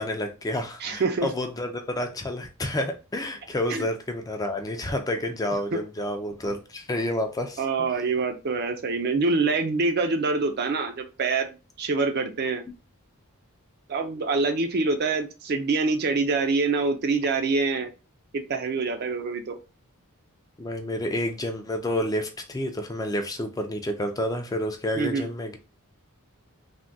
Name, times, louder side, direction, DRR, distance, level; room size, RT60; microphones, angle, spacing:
voice 1, 0.0-7.6 20.6-25.6, left 1 dB, 15° left, 0.4 m, -29 dB
voice 2, 0.8-1.3 3.7-3.9 5.7-5.8 7.6-11.5 11.8-12.6 13.9-17.9 18.3-19.6 24.9-25.3, right 3 dB, 45° right, 0.5 m, -25 dB
3.4 x 2.2 x 2.6 m
head